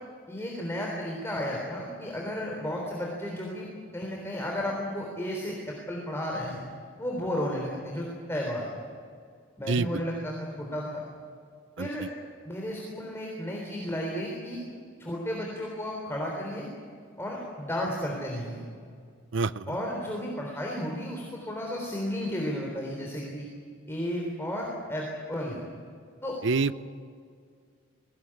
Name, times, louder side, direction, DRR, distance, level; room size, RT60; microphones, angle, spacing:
voice 1, 0.3-3.7 3.9-6.6 7.0-8.6 9.6-11.0 11.8-12.1 12.4-14.6 15.0-16.7 17.2-18.6 19.7-23.4 23.9-25.6 26.2-26.4, equal, 15° left, -1 dB, 3.7 m, -33 dB
voice 2, 19.3-19.7 26.4-26.9, right 4 dB, 65° right, 15 dB, 0.7 m, -26 dB
22.0 x 18.5 x 10.0 m, 2.1 s
head